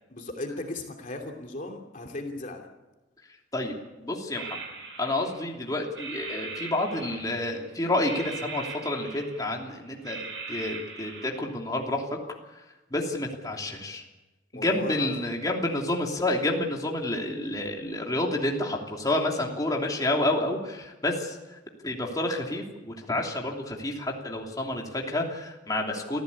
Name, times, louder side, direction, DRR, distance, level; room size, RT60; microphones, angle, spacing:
voice 1, 0.1-2.7 14.5-15.3, left 2 dB, 45° left, 2 dB, 2.8 m, -36 dB
voice 2, 3.5-4.6 5.0-12.0 12.9-14.0 14.5-21.4 21.8-26.2, left 1 dB, 20° left, 0 dB, 3.1 m, -29 dB
sound 1, 4.3-5.6 5.9-7.6 8.0-9.7 10.0-11.4, right 4 dB, 70° right, 7.9 m, -40 dB
26.0 x 15.0 x 8.6 m, 1.1 s
head